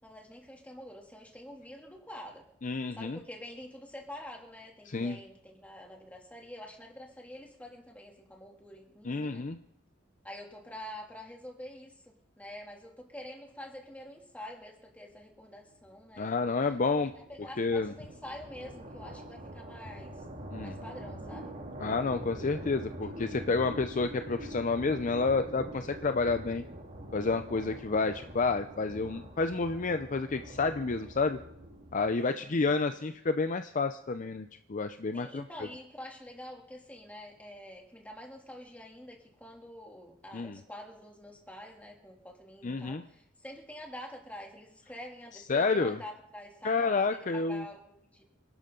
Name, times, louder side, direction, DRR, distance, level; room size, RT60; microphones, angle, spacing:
voice 1, 0.0-2.5 2.9-9.4 10.2-16.6 17.2-20.2 20.6-21.5 32.3-32.6 35.1-48.2, left 1 dB, 5° left, 0 dB, 2.7 m, -47 dB
voice 2, 2.6-3.2 4.9-5.2 9.0-9.6 16.2-17.1 17.6-17.9 20.5-20.8 21.8-26.6 27.1-31.4 31.9-35.4 40.3-40.6 42.6-43.0 45.5-46.0 46.6-47.6, left 4 dB, 40° left, 9 dB, 0.5 m, -30 dB
sound 1, 16.0-32.3, right 1 dB, 40° right, 2.1 m, -44 dB
26.5 x 12.0 x 3.8 m, 0.73 s
head